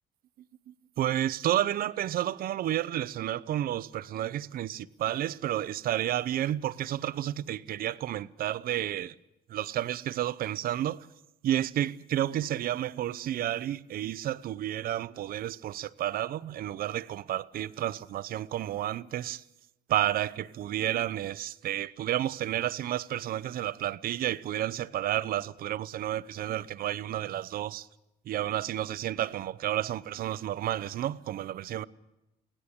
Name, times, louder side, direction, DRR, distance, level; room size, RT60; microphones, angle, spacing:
voice 1, 0.7-9.1 9.5-11.1 11.4-19.4 19.9-27.9 28.3-31.8, right 12 dB, 60° right, 0.7 m, -31 dB
24.0 x 17.5 x 8.7 m
cardioid pair, 110°, 17 cm